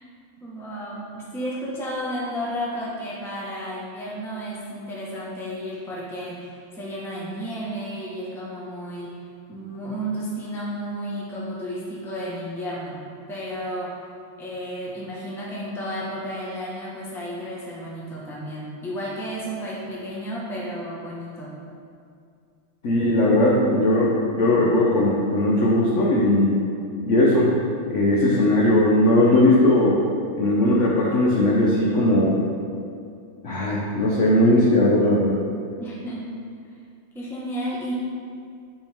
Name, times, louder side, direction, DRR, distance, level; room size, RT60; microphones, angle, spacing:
voice 1, 0.4-9.2 9.5-13.0 13.3-13.9 14.4-21.5 35.8-36.3 37.1-37.9, equal, ahead, -6 dB, 0.6 m, -32 dB
voice 2, 22.8-26.6 27.0-27.5 27.9-30.0 30.4-32.4 33.4-35.4, left 1 dB, 70° left, -4 dB, 0.7 m, -18 dB
8.0 x 4.6 x 3.5 m, 2.3 s
omnidirectional pair, 2.2 m